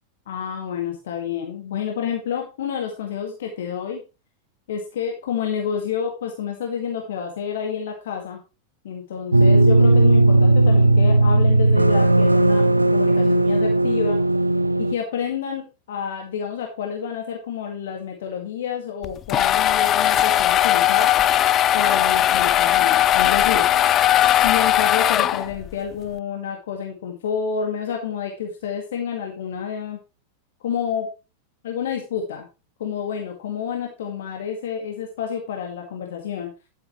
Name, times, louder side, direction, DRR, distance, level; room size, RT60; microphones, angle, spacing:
voice 1, 0.3-4.0 4.7-8.4 8.8-12.7 12.9-14.2 14.8-21.1 21.7-23.7 24.2-30.0 30.6-31.1 31.6-32.5 32.8-36.5, left 7 dB, 60° left, 3 dB, 2.0 m, -29 dB
sound 1, 9.3-14.9, right 2 dB, 85° right, 0.5 m, -16 dB
sound 2, 19.0-25.7, left 12 dB, 30° left, 0.4 m, -18 dB
11.5 x 8.2 x 3.2 m, 0.30 s
figure-of-eight pair, 90°, 0 cm